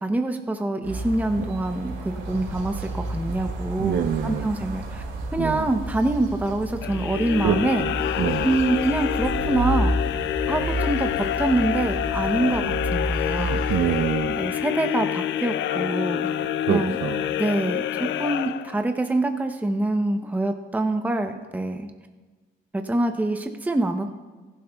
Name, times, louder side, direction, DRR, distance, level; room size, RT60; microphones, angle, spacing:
voice 1, 0.0-5.0 5.3-7.8 8.4-10.0 10.5-13.6 14.4-16.3 16.7-17.0 17.4-21.9 22.7-24.1, right 2 dB, 10° right, 5 dB, 0.7 m, -25 dB
sound 1, 0.8-14.1, right 1 dB, 90° right, 2.3 m, -31 dB
voice 2, 3.8-4.5 5.4-5.7 7.4-8.5 13.4-14.4 16.7-17.4, right 9 dB, 65° right, 6 dB, 0.6 m, -26 dB
sound 2, 6.8-19.1, left 11 dB, 70° left, 0.4 m, -27 dB
16.0 x 12.0 x 2.3 m, 1.3 s
cardioid pair, 90°, 20 cm